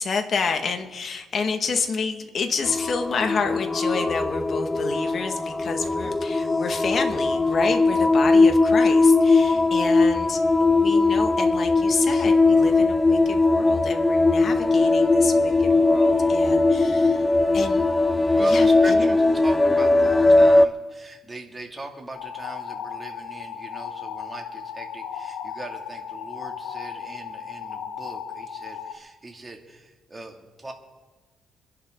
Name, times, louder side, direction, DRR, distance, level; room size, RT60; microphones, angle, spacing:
voice 1, 0.0-17.3 17.5-17.8 18.3-19.1 20.3-20.5, left 5 dB, 50° left, 5 dB, 2.0 m, -29 dB
sound 1, 2.6-20.7, left 3 dB, 20° left, 0.6 m, -19 dB
voice 2, 18.3-30.7, right 2 dB, 20° right, 2 dB, 2.6 m, -40 dB
sound 2, 22.1-29.0, left 7 dB, 80° left, 1.4 m, -36 dB
26.0 x 11.5 x 3.9 m, 1.3 s
cardioid pair, 90°, 0 cm